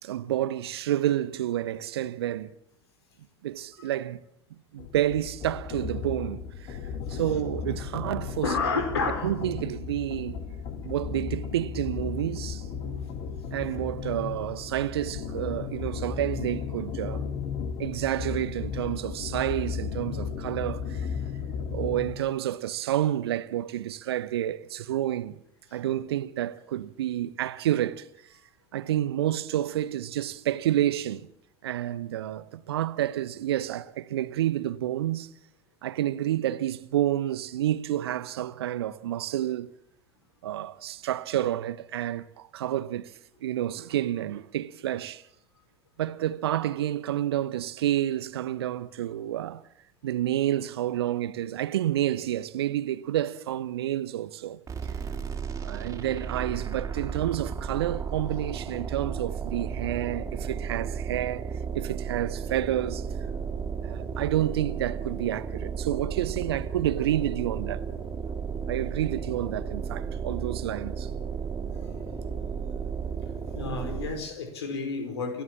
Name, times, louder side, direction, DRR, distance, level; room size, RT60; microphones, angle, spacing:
voice 1, 0.0-2.5 3.4-4.2 4.7-6.8 7.1-8.5 9.2-10.4 10.8-13.0 13.5-17.3 17.8-21.1 21.7-25.4 25.7-28.1 28.7-31.3 31.6-35.3 35.8-39.7 40.4-45.2 46.0-49.6 50.0-54.9 55.6-61.5 61.7-63.1 63.8-67.9 68.7-71.1, right 12 dB, 65° right, 1.0 m, -29 dB
sound 1, 4.8-22.2, left 6 dB, 45° left, 2.4 m, -35 dB
voice 2, 7.1-7.4 8.0-8.1 8.4-9.3 13.6-13.8 25.7-25.8 73.5-75.4, left 4 dB, 70° left, 4.6 m, -31 dB
sound 2, 54.7-74.3, right 6 dB, 20° right, 3.4 m, -34 dB
28.5 x 16.0 x 7.3 m
figure-of-eight pair, 70°, 14 cm